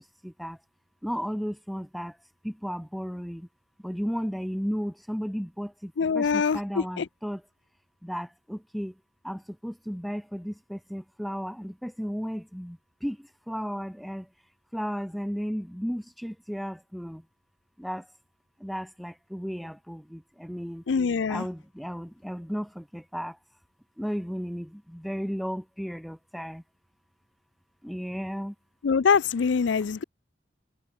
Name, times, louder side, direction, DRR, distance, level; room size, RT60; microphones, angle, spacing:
voice 1, 0.2-0.6 1.0-2.2 2.4-3.5 3.8-7.4 8.0-8.9 9.2-14.3 14.7-17.2 17.8-18.1 18.6-20.8 21.3-23.4 24.0-26.6 27.8-28.5, equal, ahead, 0.6 m, -34 dB
voice 2, 6.0-7.1 20.9-21.5 28.8-30.0, left 6 dB, 75° left, 0.4 m, -24 dB
head